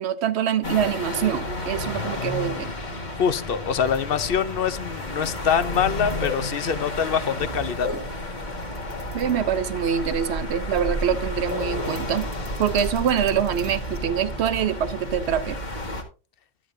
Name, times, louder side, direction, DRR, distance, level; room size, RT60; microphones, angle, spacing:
voice 1, 0.0-2.7 9.1-12.3 12.6-15.6, right 9 dB, 80° right, 0.9 m, -25 dB
sound 1, 0.6-16.0, left 1 dB, 45° left, 1.7 m, -31 dB
voice 2, 3.2-7.9, left 7 dB, 65° left, 0.8 m, -24 dB
sound 2, 3.8-14.0, left 3 dB, 10° right, 1.5 m, -39 dB
11.0 x 8.9 x 2.6 m
omnidirectional pair, 1.1 m